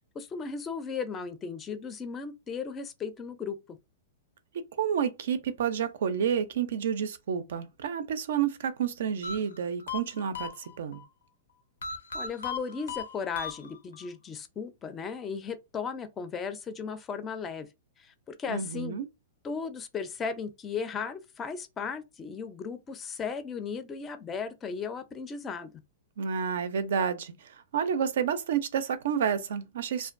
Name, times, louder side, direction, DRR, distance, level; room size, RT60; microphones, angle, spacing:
voice 1, 0.1-3.6 12.1-17.7 18.0-18.9 19.4-25.7, left 5 dB, 20° left, 0.4 m, -36 dB
voice 2, 4.8-11.0 18.5-19.1 26.2-30.1, right 7 dB, 70° right, 0.4 m, -30 dB
sound 1, 9.2-11.0 11.8-14.1, left 5 dB, 90° left, 0.5 m, -37 dB
2.4 x 2.2 x 2.5 m
hypercardioid pair, 135°, 0 cm